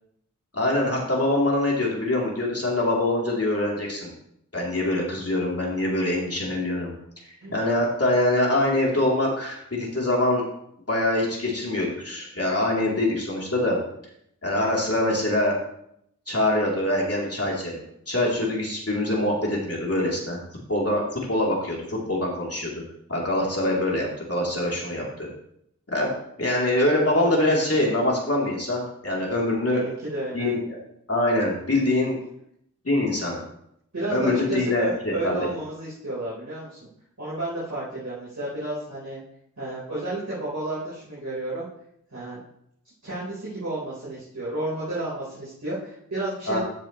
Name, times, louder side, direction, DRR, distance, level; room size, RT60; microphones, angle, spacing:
voice 1, 0.5-4.1 4.5-7.0 7.3-10.4 10.9-13.8 14.4-15.6 16.3-20.4 20.7-22.8 23.1-25.3 25.9-29.8 30.3-30.8 31.1-32.2 32.9-33.4 34.1-35.3 46.5-46.6, left 1 dB, 50° left, -3 dB, 3.5 m, -24 dB
voice 2, 29.7-30.5 33.9-36.8 37.2-39.2 39.6-41.7 42.1-42.4 43.0-46.6, right 2 dB, 65° right, -9 dB, 4.4 m, -31 dB
14.0 x 7.6 x 3.2 m, 0.72 s
wide cardioid pair, 55°, 31 cm